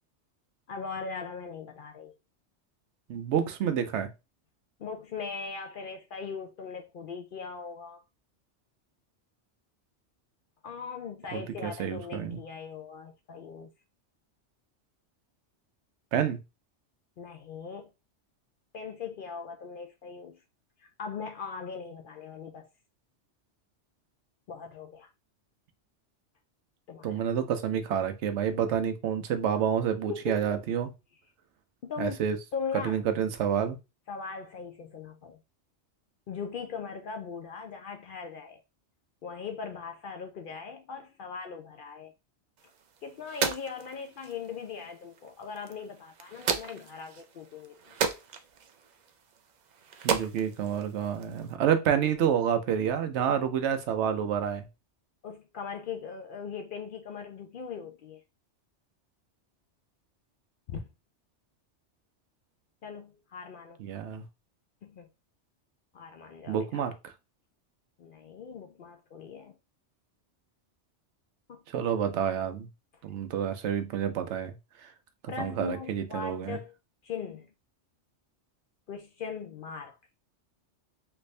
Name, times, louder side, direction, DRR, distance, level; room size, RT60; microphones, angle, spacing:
voice 1, 0.7-2.1 4.8-8.0 10.6-13.7 17.2-17.9 18.7-20.4 20.8-22.7 24.5-25.1 26.9-27.3 30.1-30.5 31.8-32.2 32.5-33.0 34.1-35.4 36.3-38.6 39.2-42.1 43.0-48.0 55.2-58.2 60.7-60.8 62.8-63.8 64.8-65.1 65.9-66.9 68.0-69.6 71.5-71.9 75.3-76.7 77.0-77.5 78.9-80.0, left 5 dB, 60° left, 0.6 m, -40 dB
voice 2, 3.1-4.1 11.3-12.4 16.1-16.4 27.0-30.9 32.0-32.4 32.8-33.8 50.0-54.6 63.8-64.2 66.5-66.9 71.7-72.7 73.0-74.6 74.8-74.9 75.4-76.6, right 8 dB, 75° right, 0.9 m, -28 dB
sound 1, 42.6-51.6, right 6 dB, 60° right, 0.4 m, -36 dB
3.4 x 2.6 x 3.1 m
omnidirectional pair, 1.2 m